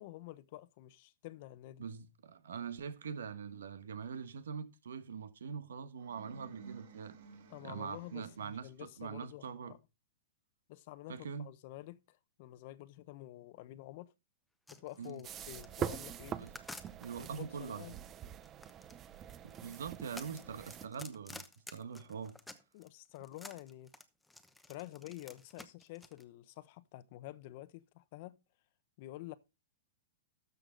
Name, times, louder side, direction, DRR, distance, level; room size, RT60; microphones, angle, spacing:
voice 1, 0.0-1.8 7.5-9.8 10.7-14.1 14.7-16.4 17.2-17.3 17.6-17.9 22.7-23.9 24.7-28.4 29.0-29.4, left 16 dB, 50° left, 0.8 m, -49 dB
voice 2, 1.8-7.2 7.6-9.7 11.1-11.5 15.0-15.2 16.4-16.5 17.0-18.0 19.6-21.4 21.7-22.4, right 6 dB, 90° right, 1.3 m, -43 dB
sound 1, 5.9-8.8, right 6 dB, 60° right, 2.2 m, -54 dB
sound 2, 14.7-17.4 18.2-22.9 23.2-26.2, left 2 dB, 5° left, 0.9 m, -51 dB
sound 3, 15.2-20.9, right 9 dB, 25° right, 0.7 m, -44 dB
13.0 x 6.7 x 3.8 m
hypercardioid pair, 145°, 0 cm